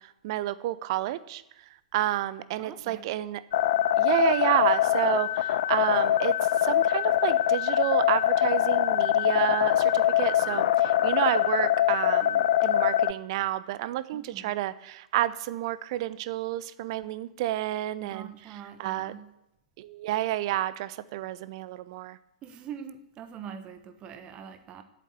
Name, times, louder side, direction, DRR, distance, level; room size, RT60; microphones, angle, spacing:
voice 1, 0.0-1.4 1.9-3.4 4.0-18.3 18.8-19.1 19.8-22.2, right 14 dB, 45° right, 16 dB, 0.6 m, -30 dB
voice 2, 2.6-3.1 14.1-14.6 18.0-19.3 22.4-24.8, right 8 dB, 25° right, 9 dB, 1.0 m, -43 dB
sound 1, 3.5-13.1, left 12 dB, 50° left, 0.5 m, -23 dB
8.5 x 7.3 x 8.4 m, 0.84 s
figure-of-eight pair, 105°, 4 cm